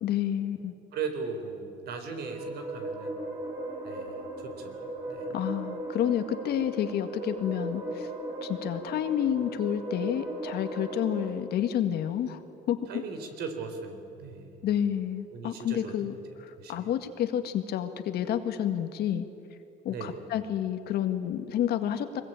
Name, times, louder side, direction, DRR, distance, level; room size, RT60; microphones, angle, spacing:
voice 1, 0.0-0.7 5.3-8.1 8.4-12.4 12.7-13.0 14.6-16.1 16.4-19.3 19.8-22.2, left 10 dB, 70° left, 8 dB, 2.0 m, -29 dB
voice 2, 0.9-3.2 3.8-4.8 5.1-5.4 12.9-14.6 15.3-16.1 16.6-16.9 19.9-20.2, right 5 dB, 70° right, 6 dB, 4.0 m, -38 dB
sound 1, 1.9-11.3, right 2 dB, 35° right, 8.0 m, -37 dB
23.5 x 21.5 x 9.1 m, 2.7 s
cardioid pair, 110°, 17 cm